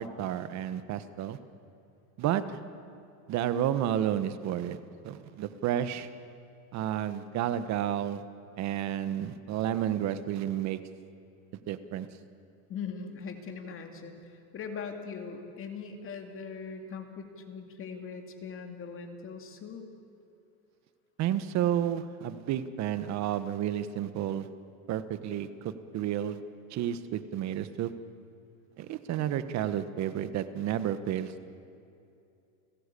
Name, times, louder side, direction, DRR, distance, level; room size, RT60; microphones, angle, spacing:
voice 1, 0.0-1.4 2.2-2.6 3.3-4.8 5.0-6.1 6.7-8.2 8.6-10.8 11.7-12.1 21.2-24.5 24.9-26.4 26.7-27.9 28.8-31.4, right 10 dB, 40° right, 12 dB, 1.3 m, -31 dB
voice 2, 12.7-19.8, left 5 dB, 30° left, 4 dB, 2.5 m, -41 dB
30.0 x 16.0 x 8.5 m, 2.6 s
supercardioid pair, 140°, 42 cm